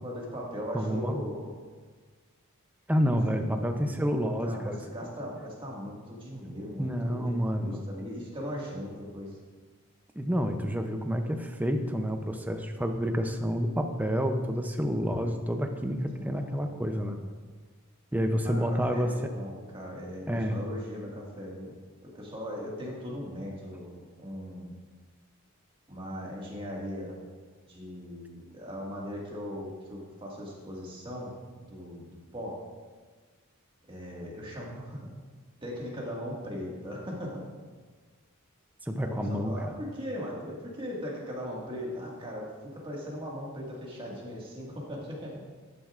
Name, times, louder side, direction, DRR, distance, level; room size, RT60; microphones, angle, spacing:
voice 1, 0.0-1.5 3.3-3.7 4.0-9.4 16.1-17.2 18.4-21.7 22.0-24.7 25.9-27.2 27.7-31.3 31.7-32.6 33.9-35.0 35.6-37.5 39.0-45.4, equal, 25° right, -3 dB, 1.8 m, -39 dB
voice 2, 0.7-1.3 2.9-4.8 6.8-7.8 10.2-17.2 18.1-19.1 20.3-20.6 38.8-39.7, equal, 10° right, 5 dB, 0.5 m, -29 dB
11.5 x 9.3 x 2.5 m, 1.4 s
head